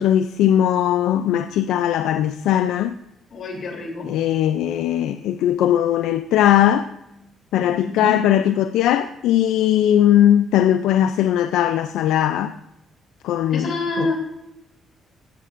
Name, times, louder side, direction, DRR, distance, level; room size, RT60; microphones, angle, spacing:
voice 1, 0.0-2.9 4.0-6.9 7.5-12.5 13.2-14.2, left 11 dB, 90° left, 0.3 m, -19 dB
voice 2, 3.3-4.1 7.8-8.2 13.5-14.2, left 2 dB, 60° left, 3.2 m, -27 dB
16.0 x 12.0 x 2.5 m
cardioid pair, 90°, 0 cm